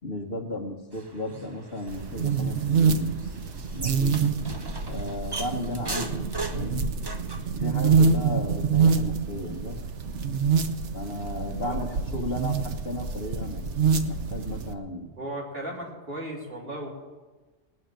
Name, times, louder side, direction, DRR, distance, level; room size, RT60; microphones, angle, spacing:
voice 1, 0.0-3.1 3.7-4.2 4.8-6.9 7.6-9.8 10.9-15.1, left 1 dB, 55° left, 2 dB, 1.6 m, -35 dB
sound 1, 0.9-7.5, right 3 dB, 25° right, 0.7 m, -39 dB
sound 2, 1.9-14.7, right 5 dB, 75° right, 1.2 m, -26 dB
voice 2, 15.2-16.9, right 1 dB, 55° right, -3 dB, 3.5 m, -35 dB
19.5 x 6.5 x 8.9 m, 1.3 s
omnidirectional pair, 1.2 m